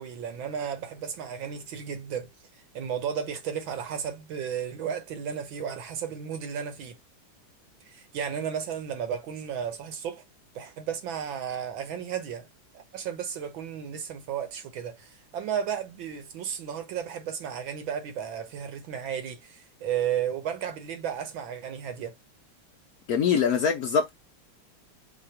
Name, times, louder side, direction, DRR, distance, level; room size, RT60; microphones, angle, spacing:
voice 1, 0.0-2.3 2.7-7.0 7.8-10.2 10.5-12.5 12.7-22.1, right 8 dB, 70° right, 1.7 m, -33 dB
voice 2, 23.1-24.1, left 6 dB, 70° left, 0.9 m, -23 dB
4.8 x 2.4 x 4.3 m
omnidirectional pair, 2.3 m